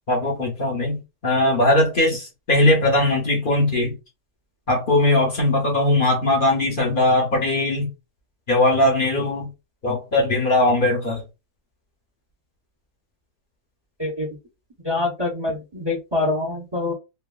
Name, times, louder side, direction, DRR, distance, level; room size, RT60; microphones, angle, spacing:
voice 1, 0.1-3.9 4.7-7.9 8.5-9.5 9.8-11.2, left 1 dB, 45° left, 0.7 m, -20 dB
voice 2, 14.8-16.9, left 2 dB, 25° right, 0.5 m, -25 dB
3.1 x 2.3 x 2.3 m
omnidirectional pair, 1.9 m